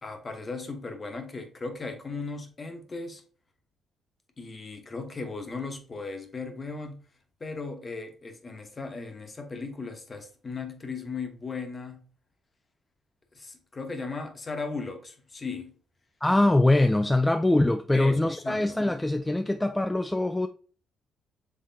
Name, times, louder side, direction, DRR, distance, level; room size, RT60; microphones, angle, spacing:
voice 1, 0.0-3.2 4.4-7.0 7.4-12.0 13.3-15.7 17.9-18.8, left 4 dB, 30° left, 1.0 m, -37 dB
voice 2, 16.2-20.5, left 2 dB, 10° left, 0.3 m, -23 dB
5.6 x 3.4 x 2.7 m
cardioid pair, 90°, 0 cm